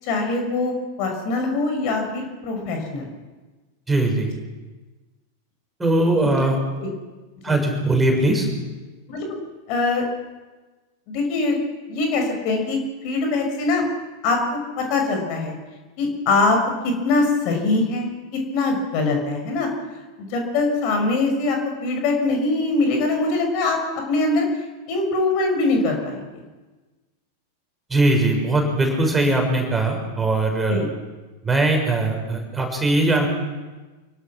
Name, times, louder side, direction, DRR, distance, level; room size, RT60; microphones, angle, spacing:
voice 1, 0.0-3.1 6.3-6.5 6.8-6.9 7.5-7.6 9.1-9.3 9.7-10.0 11.1-11.6 11.9-13.8 14.2-15.5 16.0-16.6 16.8-19.7 20.3-23.8 24.1-24.5 24.9-26.4 30.7-30.9, left 3 dB, 45° left, 3 dB, 6.4 m, -23 dB
voice 2, 3.9-4.3 5.8-6.6 7.4-8.5 27.9-30.8 31.4-33.3, right 2 dB, 10° right, 2 dB, 6.4 m, -20 dB
26.5 x 23.5 x 6.2 m, 1.3 s
figure-of-eight pair, 90°, 0 cm